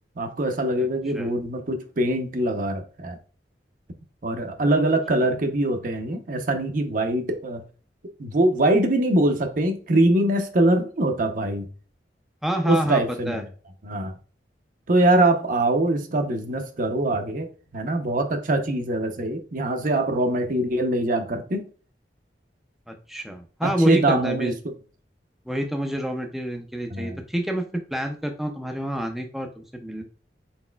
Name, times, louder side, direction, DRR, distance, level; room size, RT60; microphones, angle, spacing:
voice 1, 0.2-3.2 4.2-7.6 8.2-11.7 12.6-13.4 13.8-14.1 14.9-21.6 23.6-24.5 26.9-27.2, right 1 dB, 50° right, 0.6 m, -23 dB
voice 2, 12.4-13.4 22.9-24.5 25.5-27.7 27.9-30.0, equal, ahead, 0.4 m, -28 dB
4.2 x 4.0 x 2.2 m
head